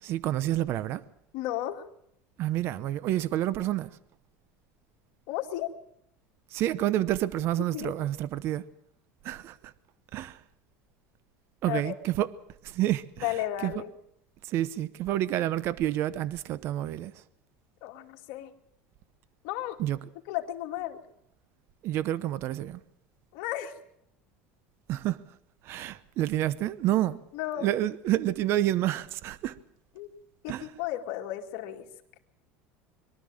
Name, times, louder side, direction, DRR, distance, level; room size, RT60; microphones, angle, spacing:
voice 1, 0.0-1.0 2.4-4.0 6.5-8.6 9.2-9.7 10.1-10.4 11.6-12.3 12.6-13.8 14.4-17.2 19.8-20.0 21.8-22.8 24.9-25.2 25.6-27.2 27.6-29.6 30.5-30.7, right 13 dB, 50° right, 0.8 m, -29 dB
voice 2, 1.3-1.9 5.3-5.7 7.7-7.9 11.7-11.9 13.2-13.9 17.8-18.5 19.4-19.8 20.3-21.0 23.3-23.7 27.3-27.7 30.0-30.1 30.4-31.9, left 13 dB, 65° left, 2.4 m, -33 dB
23.0 x 12.5 x 8.8 m
supercardioid pair, 135°, 5 cm